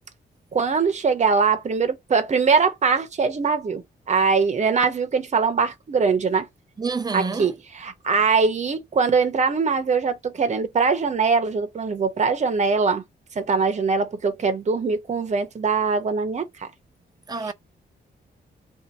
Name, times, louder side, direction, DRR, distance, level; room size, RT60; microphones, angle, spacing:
voice 1, 0.5-6.5 7.1-13.0 13.3-16.7 17.4-17.5, right 5 dB, 40° right, 0.8 m, -22 dB
voice 2, 6.8-7.5 17.3-17.5, right 4 dB, 20° right, 0.5 m, -27 dB
2.7 x 2.5 x 4.1 m
cardioid pair, 105°, 18 cm